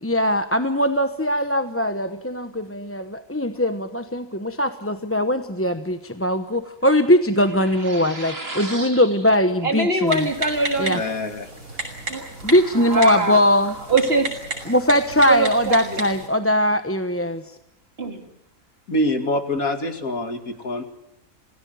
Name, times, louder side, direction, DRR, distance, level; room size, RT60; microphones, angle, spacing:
voice 1, 0.0-10.3 10.8-11.0 12.4-13.8 14.7-17.4, equal, 10° left, 9 dB, 0.9 m, -20 dB
voice 2, 7.9-9.0 9.6-11.0 12.1-13.4 13.9-14.3 15.3-16.0 18.0-18.2, right 2 dB, 45° right, 5 dB, 3.1 m, -24 dB
Typing, 10.1-16.3, right 2 dB, 80° right, 6.8 m, -33 dB
voice 3, 10.9-11.5 18.9-20.8, left 1 dB, 85° left, 6 dB, 3.0 m, -25 dB
27.0 x 18.0 x 9.4 m, 0.80 s
omnidirectional pair, 1.4 m